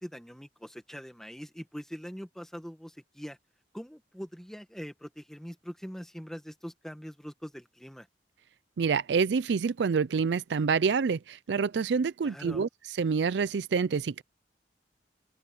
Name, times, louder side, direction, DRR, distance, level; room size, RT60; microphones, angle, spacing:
voice 1, 0.0-3.4 3.7-8.1 12.2-12.6, equal, 5° left, 1.7 m, -43 dB
voice 2, 8.8-12.7 13.0-14.2, right 5 dB, 70° right, 0.4 m, -27 dB
open air
head